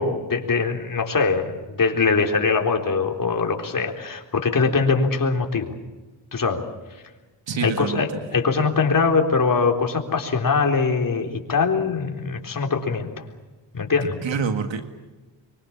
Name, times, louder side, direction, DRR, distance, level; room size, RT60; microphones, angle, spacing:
voice 1, 0.0-5.7 6.3-6.6 7.6-13.2 13.7-14.2, left 4 dB, 45° left, 2 dB, 3.9 m, -22 dB
voice 2, 7.5-8.0 14.2-14.9, right 5 dB, 85° right, 6 dB, 2.0 m, -26 dB
25.0 x 24.5 x 7.3 m, 1.2 s
wide cardioid pair, 105°, 44 cm